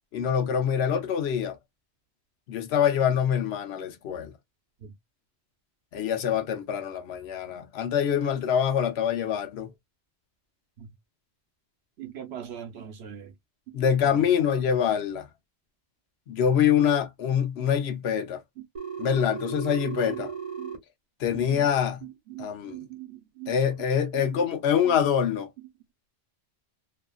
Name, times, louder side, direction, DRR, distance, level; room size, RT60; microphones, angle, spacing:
voice 1, 0.1-1.6 2.5-4.3 5.9-9.7 13.7-15.3 16.3-18.4 19.0-20.3 21.2-22.1 22.4-22.8 23.5-25.5, left 8 dB, 80° left, 0.9 m, -25 dB
voice 2, 12.0-13.3 14.1-14.2 19.1-19.2 19.8-20.2 20.6-20.7 21.3-21.7 22.0-23.5 24.1-24.4 24.9-25.0, right 11 dB, 75° right, 1.0 m, -41 dB
Telephone, 18.8-20.8, right 7 dB, 35° right, 0.8 m, -36 dB
2.8 x 2.4 x 2.3 m
omnidirectional pair, 1.1 m